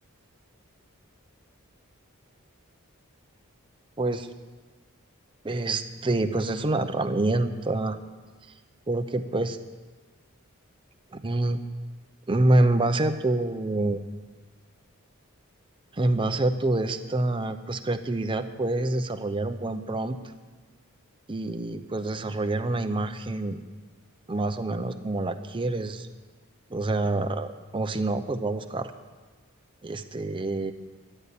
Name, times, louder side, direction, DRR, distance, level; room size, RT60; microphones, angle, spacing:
voice 1, 4.0-4.3 5.4-8.0 8.9-9.6 11.1-11.6 12.3-14.0 15.9-20.2 21.3-23.6 24.3-26.1 26.7-28.9 29.8-30.7, right 2 dB, 25° right, 7 dB, 0.6 m, -26 dB
13.5 x 10.0 x 8.5 m, 1.3 s
head